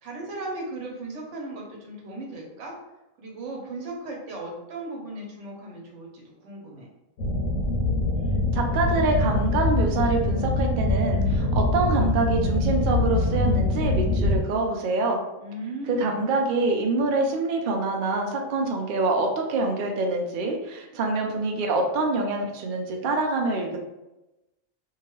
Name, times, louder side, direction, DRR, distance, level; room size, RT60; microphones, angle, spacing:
voice 1, 0.0-2.8 3.2-6.9 15.4-16.3, right 2 dB, 65° right, -1 dB, 1.0 m, -37 dB
sound 1, 7.2-14.4, left 2 dB, 75° left, 1.0 m, -24 dB
voice 2, 8.5-15.2 15.9-23.8, right 3 dB, 90° right, 2 dB, 0.4 m, -25 dB
2.7 x 2.2 x 3.0 m, 0.98 s
omnidirectional pair, 1.4 m